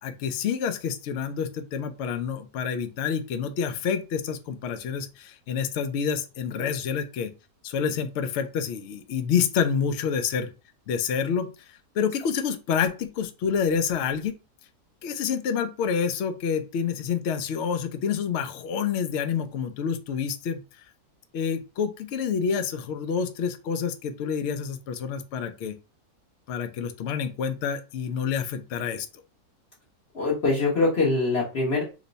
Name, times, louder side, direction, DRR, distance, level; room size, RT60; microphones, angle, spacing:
voice 1, 0.0-7.3 7.6-10.5 10.9-14.4 15.0-20.6 21.3-25.7 26.5-29.1, left 7 dB, 70° left, 9 dB, 0.6 m, -28 dB
voice 2, 30.1-31.8, left 3 dB, 45° left, -5 dB, 1.1 m, -23 dB
3.0 x 2.1 x 3.9 m, 0.31 s
omnidirectional pair, 1.6 m